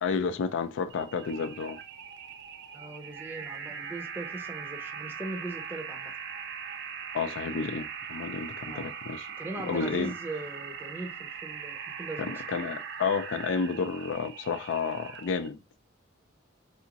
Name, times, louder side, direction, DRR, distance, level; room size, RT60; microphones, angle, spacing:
voice 1, 0.0-1.8 7.1-9.3 9.6-10.1 12.2-15.6, left 5 dB, 70° left, 0.4 m, -31 dB
sound 1, 0.9-15.5, right 7 dB, 60° right, 0.4 m, -40 dB
voice 2, 2.7-6.1 8.7-8.9 9.4-12.4, right 2 dB, 10° right, 0.5 m, -40 dB
3.6 x 2.5 x 2.9 m
head